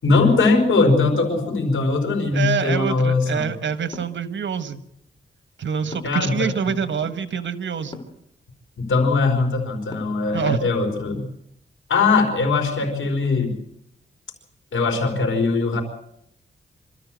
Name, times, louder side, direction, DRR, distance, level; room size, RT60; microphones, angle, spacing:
voice 1, 0.0-3.5 6.0-6.5 8.8-11.3 11.9-13.5 14.7-15.8, left 3 dB, 85° left, 4 dB, 4.8 m, -20 dB
voice 2, 2.3-4.8 5.6-8.0 10.3-10.7, right 7 dB, 70° right, 11 dB, 1.5 m, -26 dB
sound 1, 3.9-4.2 5.9-6.3 7.9-8.2 9.9-10.3, left 2 dB, 25° left, 3.1 m, -38 dB
26.0 x 13.5 x 7.8 m, 0.76 s
wide cardioid pair, 95°, 20 cm